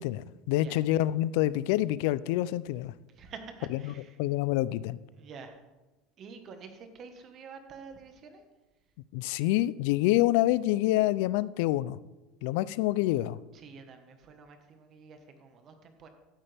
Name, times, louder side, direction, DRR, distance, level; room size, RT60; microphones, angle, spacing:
voice 1, 0.0-2.9 3.9-4.0 4.2-5.0 9.1-12.0 12.4-13.4, left 15 dB, 75° left, 18 dB, 0.3 m, -27 dB
voice 2, 0.5-0.9 3.1-4.2 5.1-5.6 6.2-8.5 13.5-16.1, right 5 dB, 40° right, 6 dB, 1.4 m, -48 dB
12.5 x 8.5 x 3.5 m, 1.1 s
supercardioid pair, 125°, 0 cm